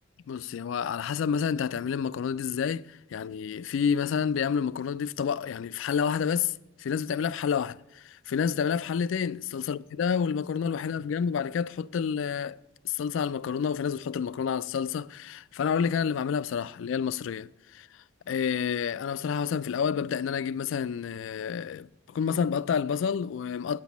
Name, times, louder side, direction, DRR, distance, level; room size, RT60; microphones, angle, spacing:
voice 1, 0.3-12.6 12.8-17.9 18.3-23.8, left 7 dB, 70° left, 0.3 m, -29 dB
9.0 x 6.0 x 8.3 m
head